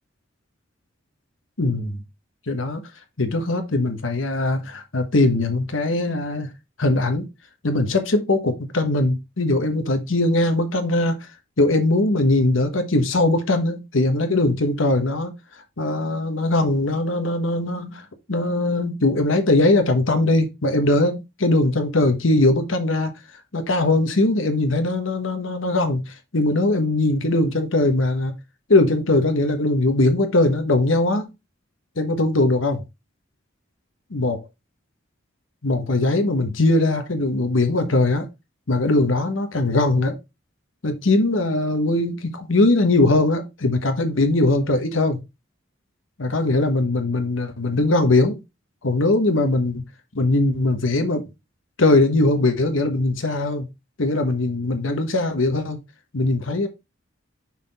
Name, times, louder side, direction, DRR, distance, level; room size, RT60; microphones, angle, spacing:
voice 1, 1.6-2.0 2.5-2.8 3.2-6.5 6.8-7.3 7.6-11.3 11.6-15.3 15.8-18.0 18.3-23.1 23.5-28.3 28.7-31.3 32.0-32.8 34.1-34.4 35.6-38.3 38.7-40.2 40.8-45.2 46.2-48.4 48.8-49.8 50.1-51.3 51.8-53.7 54.0-55.8 56.1-56.7, left 2 dB, 90° left, 1.2 m, -20 dB
6.0 x 4.2 x 4.1 m
head